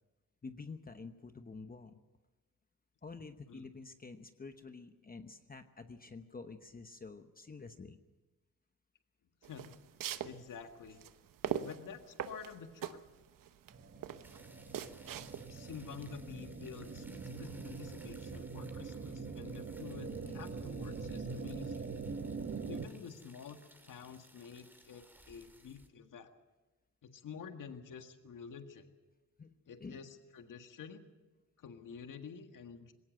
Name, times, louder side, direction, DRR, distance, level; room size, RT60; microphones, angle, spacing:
voice 1, 0.4-2.0 3.0-8.0 11.4-11.5 13.9-14.0 20.2-20.4 21.2-21.4 29.4-30.0, left 4 dB, 25° left, 8 dB, 1.0 m, -49 dB
voice 2, 9.4-9.8 10.2-11.0 11.6-13.0 15.5-21.9 22.7-23.6 23.8-26.3 27.0-28.9 29.7-31.0 31.6-32.9, left 6 dB, 70° left, 6 dB, 1.8 m, -49 dB
sound 1, 9.4-15.7, right 10 dB, 85° right, 1.0 m, -41 dB
sound 2, 13.7-22.9, right 4 dB, 40° right, 1.5 m, -43 dB
sound 3, 14.2-25.9, right 1 dB, 5° right, 2.7 m, -62 dB
20.5 x 17.5 x 7.8 m, 1.2 s
cardioid pair, 105°, 32 cm